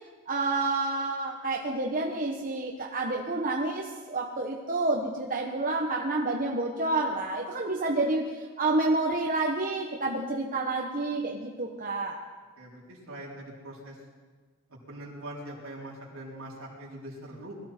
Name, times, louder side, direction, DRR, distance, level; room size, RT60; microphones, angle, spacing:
voice 1, 0.3-12.2, right 2 dB, 40° right, -1 dB, 1.1 m, -29 dB
voice 2, 12.6-14.0 14.9-17.5, right 1 dB, 65° right, -3 dB, 3.9 m, -42 dB
21.5 x 14.0 x 4.5 m, 1.4 s
head